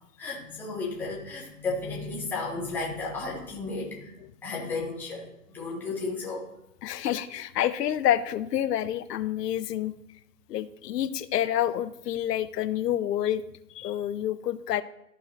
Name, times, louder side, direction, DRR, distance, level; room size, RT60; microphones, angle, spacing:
voice 1, 0.2-4.1 4.4-6.4, left 3 dB, 5° left, -5 dB, 0.9 m, -33 dB
voice 2, 6.8-9.9 10.5-13.4 13.7-14.8, left 11 dB, 85° left, 14 dB, 0.7 m, -28 dB
13.5 x 4.7 x 2.8 m, 0.81 s
hypercardioid pair, 165°, 47 cm